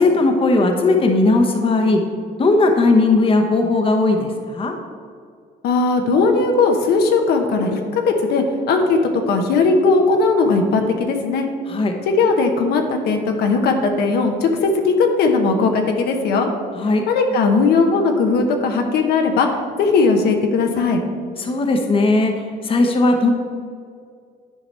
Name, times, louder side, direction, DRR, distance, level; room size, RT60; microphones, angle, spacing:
voice 1, 0.0-2.0 2.4-4.7 11.7-11.9 16.8-17.0 21.4-22.3 22.6-23.3, left 2 dB, 30° left, 4 dB, 0.9 m, -17 dB
voice 2, 5.6-9.0 9.3-11.5 12.1-16.5 17.1-19.5 19.8-21.0, left 4 dB, 75° left, 4 dB, 1.0 m, -18 dB
10.5 x 4.8 x 4.2 m, 2.2 s
cardioid pair, 110°, 17 cm